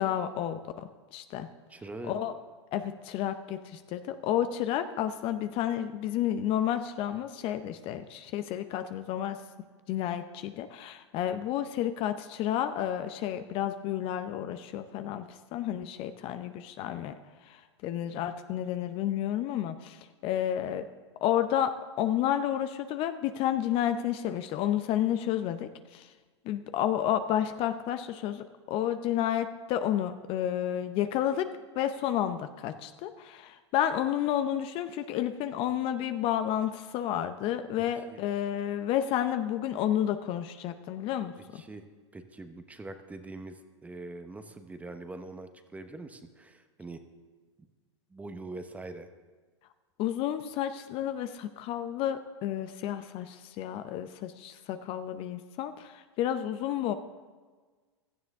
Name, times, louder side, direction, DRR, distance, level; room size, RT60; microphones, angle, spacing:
voice 1, 0.0-1.5 2.1-2.3 2.7-9.4 9.9-17.2 17.4-20.9 21.2-26.1 26.4-31.5 31.7-41.6 50.0-56.9, left 11 dB, 40° left, 10 dB, 0.7 m, -31 dB
voice 2, 1.7-2.1 38.1-38.2 41.5-41.8 42.1-47.0 47.6-47.7 48.1-49.1, right 2 dB, 10° right, 8 dB, 0.9 m, -43 dB
16.5 x 12.5 x 3.6 m, 1.4 s
hypercardioid pair, 110°, 15 cm